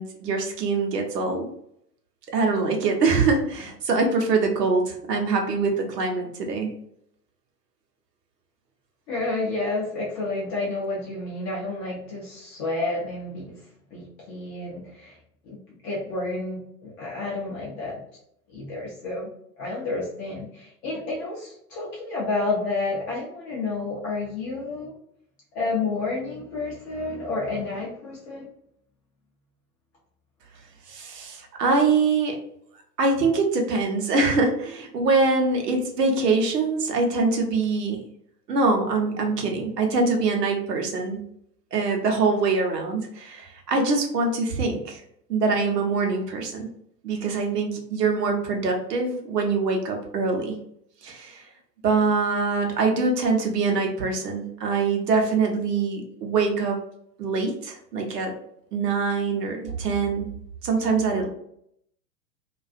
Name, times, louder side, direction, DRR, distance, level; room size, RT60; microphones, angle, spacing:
voice 1, 0.0-1.5 2.3-6.7 30.9-32.4 33.0-38.0 38.5-41.2 41.7-45.0 45.3-46.7 47.0-50.6 51.0-51.4 51.8-56.8 57.2-58.3 58.7-60.3 60.6-61.3, right 4 dB, 70° right, 2 dB, 0.8 m, -24 dB
voice 2, 9.1-13.6 13.9-15.2 15.4-18.0 18.5-19.3 19.6-24.9 25.5-28.5, left 3 dB, 20° left, -5 dB, 0.4 m, -30 dB
2.4 x 2.3 x 2.4 m, 0.72 s
figure-of-eight pair, 100°, 50 cm